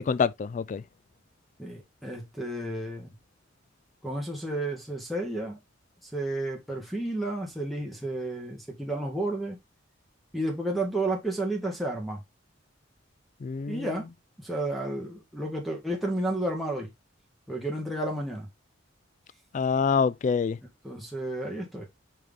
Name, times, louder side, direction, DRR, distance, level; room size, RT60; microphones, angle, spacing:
voice 1, 0.1-0.8 13.4-13.9 19.5-20.6, left 5 dB, 40° left, 0.3 m, -26 dB
voice 2, 1.6-3.1 4.0-5.6 6.1-9.6 10.3-12.2 13.7-14.1 14.4-16.9 17.5-18.5 20.8-21.9, right 1 dB, ahead, 2.0 m, -31 dB
5.7 x 4.8 x 3.5 m
head